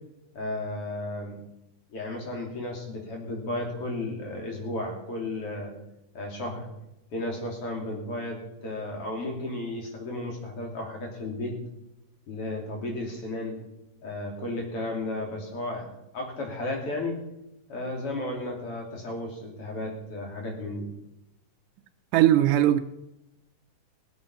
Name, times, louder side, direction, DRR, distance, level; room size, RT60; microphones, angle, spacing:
voice 1, 0.3-1.4 1.9-5.7 6.1-6.7 7.1-11.6 12.3-13.6 14.0-15.9 16.1-17.2 17.7-20.9, left 2 dB, 45° left, 1 dB, 3.8 m, -33 dB
voice 2, 22.1-22.8, right 12 dB, 85° right, 8 dB, 2.2 m, -19 dB
20.0 x 8.3 x 5.6 m, 0.89 s
omnidirectional pair, 3.7 m